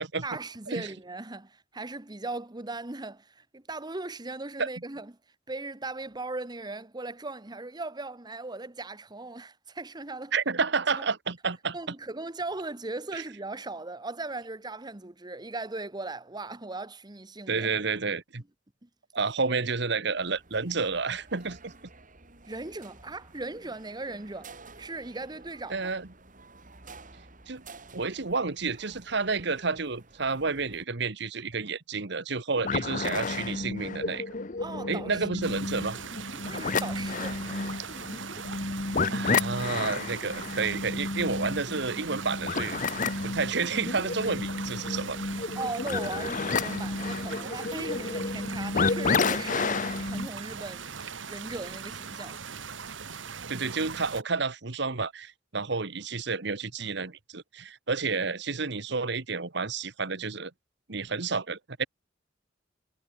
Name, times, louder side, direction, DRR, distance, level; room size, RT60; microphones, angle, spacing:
voice 1, 0.2-5.1 5.5-10.3 11.0-11.1 11.7-17.7 18.8-18.9 19.5-19.6 22.4-25.9 34.6-35.3 36.4-37.4 45.5-52.4, right 2 dB, 20° right, 1.1 m, -38 dB
voice 2, 10.3-11.8 17.5-18.4 19.1-21.7 25.7-26.1 27.5-27.6 27.9-34.2 34.9-36.0 39.1-42.8 43.2-45.2 53.5-60.5 60.9-61.9, right 4 dB, 65° right, 1.5 m, -30 dB
sound 1, 20.1-30.8, right 3 dB, 45° right, 5.9 m, -52 dB
sound 2, 32.6-50.3, left 4 dB, 45° left, 1.1 m, -31 dB
sound 3, 35.4-54.2, right 6 dB, 90° right, 1.5 m, -40 dB
head